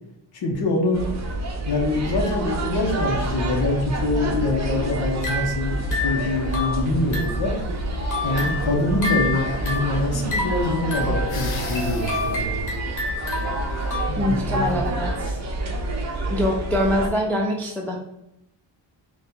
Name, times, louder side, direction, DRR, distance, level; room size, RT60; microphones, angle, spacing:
voice 1, 0.4-1.1 1.7-7.5 8.2-12.6 14.1-15.0, left 2 dB, 60° left, -1 dB, 0.9 m, -25 dB
sound 1, 0.9-17.1, right 1 dB, 40° right, 0.7 m, -28 dB
sound 2, 4.9-7.5 7.9-14.1, left 2 dB, 45° left, 1.4 m, -30 dB
sound 3, 11.3-12.4, left 5 dB, 90° left, 0.9 m, -36 dB
voice 2, 14.2-15.4 16.3-18.0, equal, 5° left, -1 dB, 0.3 m, -24 dB
4.2 x 2.5 x 3.7 m, 0.83 s
wide cardioid pair, 170°, 43 cm